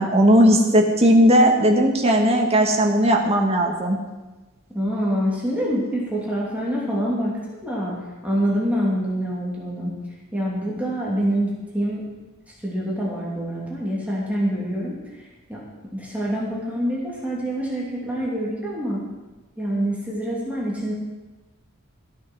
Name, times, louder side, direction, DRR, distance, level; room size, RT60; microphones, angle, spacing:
voice 1, 0.0-4.0, equal, 30° right, 2 dB, 1.6 m, -17 dB
voice 2, 4.7-9.9 10.3-12.1 12.6-15.6 15.9-19.0 19.6-20.9, equal, 5° right, -5 dB, 2.8 m, -26 dB
14.0 x 8.6 x 6.1 m, 1.2 s
head